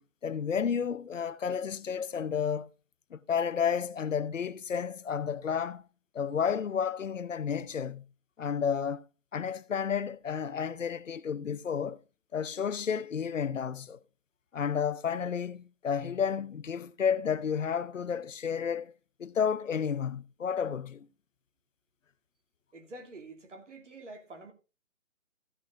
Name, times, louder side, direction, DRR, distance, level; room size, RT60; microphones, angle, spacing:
voice 1, 0.0-2.7 3.1-5.8 6.1-8.0 8.4-9.0 9.3-12.0 12.3-14.0 14.5-18.9 19.2-21.1, left 7 dB, 70° left, 0.9 m, -31 dB
voice 2, 22.7-24.5, right 2 dB, 60° right, 2.9 m, -47 dB
15.0 x 6.3 x 3.7 m
hypercardioid pair, 170°, 40 cm